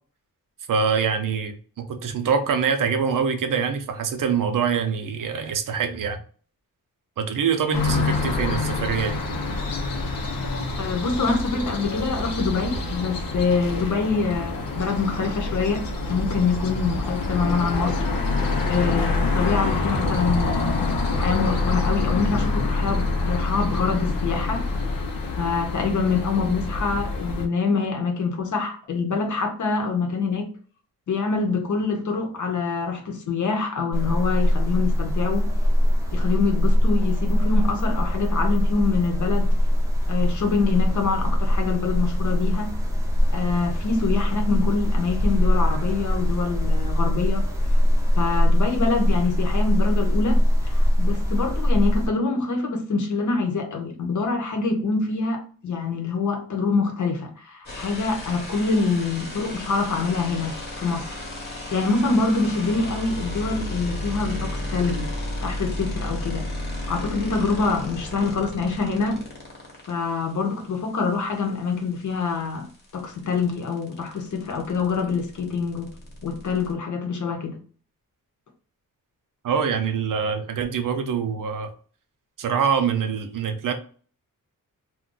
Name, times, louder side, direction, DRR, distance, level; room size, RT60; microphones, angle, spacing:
voice 1, 0.7-6.2 7.2-9.2 79.4-81.7 82.4-83.7, right 6 dB, 70° right, 0.6 m, -24 dB
sound 1, 7.7-27.5, left 3 dB, 90° left, 0.7 m, -26 dB
voice 2, 10.8-15.8 16.1-18.1 18.7-25.0 25.4-30.5 31.1-35.5 36.1-39.5 40.1-42.7 43.3-47.5 48.2-61.2 61.4-65.1 65.4-66.5 66.9-69.2 69.9-76.0 76.2-77.6, left 4 dB, 60° left, 0.8 m, -25 dB
sound 2, 33.9-52.1, equal, 10° right, 0.5 m, -22 dB
sound 3, 57.7-69.9 72.0-72.1 72.4-76.7, left 1 dB, 30° left, 0.9 m, -33 dB
2.5 x 2.2 x 3.7 m
wide cardioid pair, 160°, 34 cm